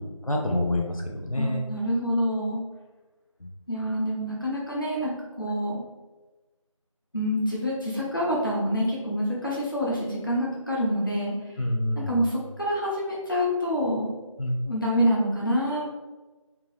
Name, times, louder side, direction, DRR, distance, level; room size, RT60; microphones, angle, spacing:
voice 1, 0.2-1.7 3.4-3.5 11.6-12.2 14.4-14.6, left 1 dB, 80° left, 0 dB, 0.9 m, -27 dB
voice 2, 1.4-2.6 3.7-5.1 5.4-5.8 7.1-11.3 11.9-14.1 14.7-15.9, equal, 40° left, -5 dB, 0.8 m, -26 dB
3.7 x 2.9 x 3.1 m, 1.2 s
figure-of-eight pair, 180°, 17 cm